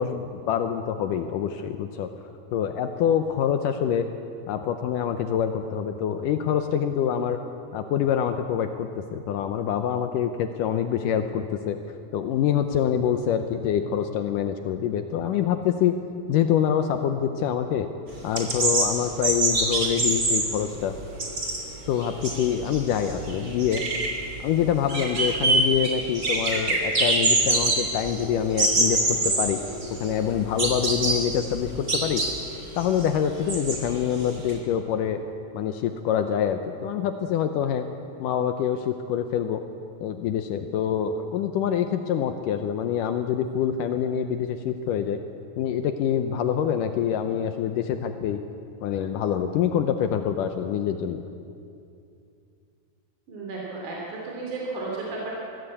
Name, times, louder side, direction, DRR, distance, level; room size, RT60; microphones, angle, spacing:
voice 1, 0.0-2.1 2.5-4.1 4.5-7.4 7.7-11.8 12.1-16.0 16.3-17.9 18.2-20.9 21.9-23.8 24.4-29.6 30.0-32.2 32.8-35.2 35.5-37.9 38.2-39.6 40.0-45.2 45.6-48.4 48.8-51.2, left 9 dB, 80° left, 8 dB, 1.9 m, -25 dB
sound 1, 18.1-34.5, right 2 dB, 25° right, 2.8 m, -25 dB
voice 2, 53.3-55.4, right 3 dB, 50° right, -3 dB, 4.1 m, -33 dB
22.0 x 16.0 x 8.3 m, 2.5 s
omnidirectional pair, 4.7 m